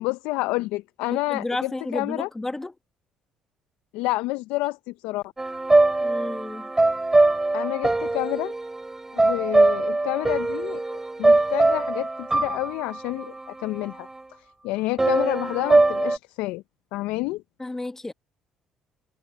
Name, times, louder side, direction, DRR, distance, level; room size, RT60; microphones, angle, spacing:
voice 1, 0.0-2.3 3.9-5.3 7.5-8.5 9.1-14.1 14.4-16.6 16.9-17.4, left 20 dB, 80° left, 0.5 m, -29 dB
voice 2, 1.1-2.7 6.0-6.7 17.6-18.1, left 2 dB, 15° left, 1.3 m, -32 dB
sound 1, 5.4-14.2 15.0-16.2, right 2 dB, 20° right, 2.3 m, -22 dB
hypercardioid pair, 65°, 2 cm